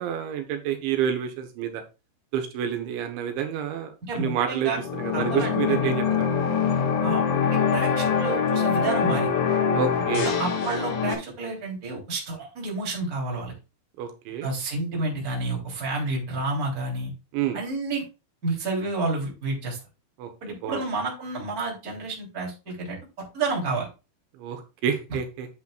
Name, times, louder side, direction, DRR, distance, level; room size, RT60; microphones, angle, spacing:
voice 1, 0.0-1.8 2.3-4.7 5.0-6.3 9.7-10.3 14.0-14.5 17.3-17.6 20.2-20.3 20.6-20.8 24.4-25.5, right 9 dB, 80° right, 6 dB, 3.4 m, -28 dB
voice 2, 4.1-4.8 5.1-6.1 7.0-9.3 10.2-13.5 14.4-17.1 17.5-18.0 18.4-19.8 20.4-23.0 23.3-23.9, right 3 dB, 20° right, -2 dB, 3.1 m, -30 dB
sound 1, 4.7-11.1, left 6 dB, 55° left, 2.5 m, -24 dB
10.0 x 8.4 x 2.4 m, 0.29 s
omnidirectional pair, 5.3 m